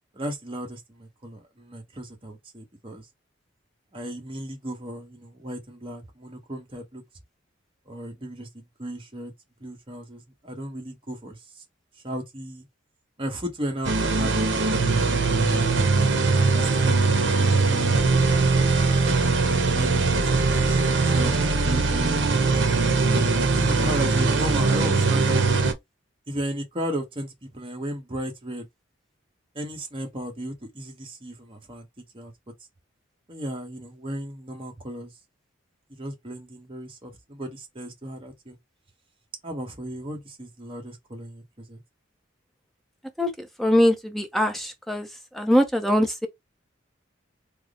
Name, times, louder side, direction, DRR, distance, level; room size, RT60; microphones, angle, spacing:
voice 1, 0.1-3.0 3.9-7.0 7.9-9.3 9.6-11.4 12.0-12.6 13.2-15.8 16.5-17.1 17.4-18.7 19.5-19.9 20.2-22.3 23.5-25.4 26.3-28.7 29.5-31.9 32.1-32.3 33.3-35.1 35.9-38.6 39.4-41.8, equal, 30° right, 1.0 m, -35 dB
sound 1, 13.8-25.7, right 3 dB, 65° right, 0.9 m, -21 dB
voice 2, 43.6-45.1 45.3-46.3, equal, ahead, 0.6 m, -22 dB
3.4 x 2.0 x 3.5 m
head